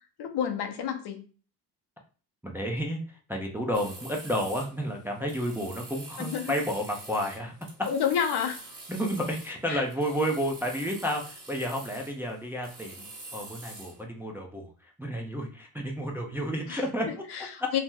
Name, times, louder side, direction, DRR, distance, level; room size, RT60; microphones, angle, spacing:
voice 1, 0.2-1.2 6.2-6.5 7.9-8.6 9.7-9.8 16.7-16.8 17.3-17.8, left 8 dB, 55° left, 5 dB, 0.8 m, -29 dB
voice 2, 2.4-7.5 8.9-17.2, equal, 5° right, 0 dB, 0.5 m, -31 dB
sound 1, 3.7-14.0, right 2 dB, 40° right, 1.3 m, -46 dB
2.9 x 2.0 x 3.7 m, 0.39 s
supercardioid pair, 75°, 47 cm